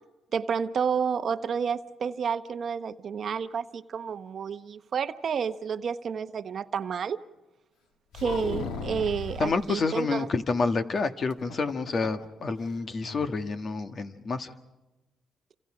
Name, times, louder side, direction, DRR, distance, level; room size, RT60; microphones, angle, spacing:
voice 1, 0.3-7.2 8.1-10.3, right 6 dB, 55° right, 0.9 m, -30 dB
sound 1, 8.1-9.6 11.3-12.3 12.6-12.7 13.0-13.3, left 4 dB, 85° left, 2.1 m, -36 dB
voice 2, 9.4-14.5, left 4 dB, 45° left, 1.6 m, -28 dB
29.0 x 26.5 x 5.0 m
cardioid pair, 90°, 0 cm